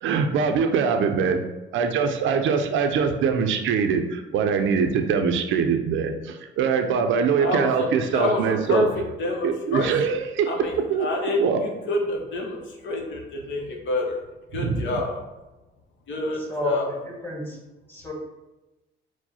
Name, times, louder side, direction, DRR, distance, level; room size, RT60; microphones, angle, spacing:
voice 1, 0.0-1.4 1.7-8.9 9.4-10.5 10.9-11.1 11.4-11.6 14.5-14.9, right 6 dB, 75° right, 6 dB, 0.5 m, -23 dB
voice 2, 7.4-7.9 8.1-8.9 9.2-9.9 10.5-14.2 14.5-15.2 16.1-17.0, left 2 dB, 70° left, 0 dB, 0.8 m, -27 dB
voice 3, 16.5-17.6 17.9-18.1, left 1 dB, 10° left, -2 dB, 1.3 m, -30 dB
4.6 x 2.1 x 4.1 m, 1.1 s
cardioid pair, 90°, 20 cm